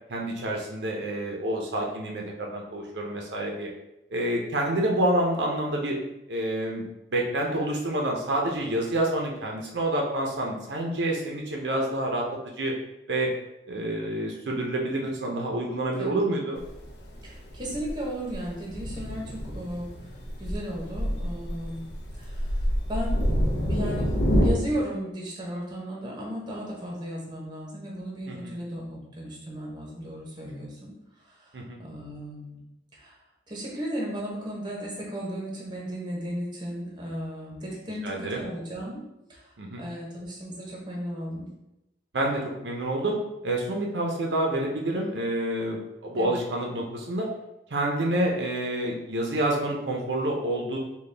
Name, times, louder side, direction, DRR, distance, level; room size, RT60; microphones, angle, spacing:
voice 1, 0.1-3.7 4.1-6.0 6.3-12.2 12.6-12.7 13.1-13.3 13.7-16.6 28.3-28.5 31.5-31.8 38.0-38.4 39.6-39.9 42.1-43.2 43.4-47.3 47.7-50.8, right 1 dB, 80° right, 0 dB, 0.6 m, -28 dB
Thunder, 16.6-24.5, equal, 70° left, 0.6 m, -28 dB
voice 2, 17.2-20.1 20.4-21.9 22.1-22.6 22.9-30.9 31.2-32.6 32.9-33.2 33.5-41.5 46.2-46.4, equal, 25° right, -2 dB, 0.8 m, -35 dB
4.0 x 2.3 x 3.3 m, 0.89 s
head